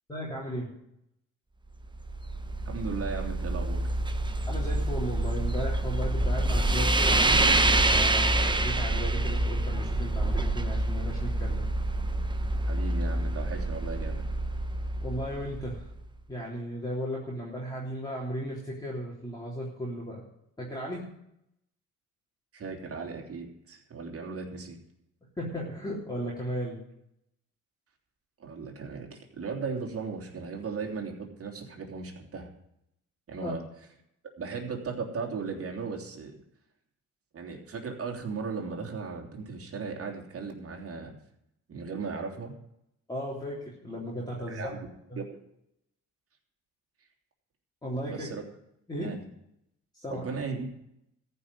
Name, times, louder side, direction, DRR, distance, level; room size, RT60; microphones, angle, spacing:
voice 1, 0.1-0.7 4.5-7.5 7.8-11.6 15.0-15.9 16.3-20.2 20.6-21.0 25.4-26.8 33.4-33.5 43.1-44.7 45.1-45.2 47.8-48.3 48.9-49.1 49.9-50.2, equal, 15° left, -5 dB, 3.4 m, -35 dB
sound 1, 1.8-16.0, right 2 dB, 15° right, 0.9 m, -27 dB
voice 2, 2.6-3.9 12.6-14.2 22.5-24.8 28.4-32.5 33.3-33.6 34.4-36.3 37.3-41.1 41.7-42.5 44.4-44.8 45.2-45.4 48.1-48.4 49.0-49.2 50.1-50.7, right 4 dB, 50° right, 1 dB, 3.2 m, -36 dB
14.0 x 5.6 x 9.8 m, 0.78 s
cardioid pair, 90°, 30 cm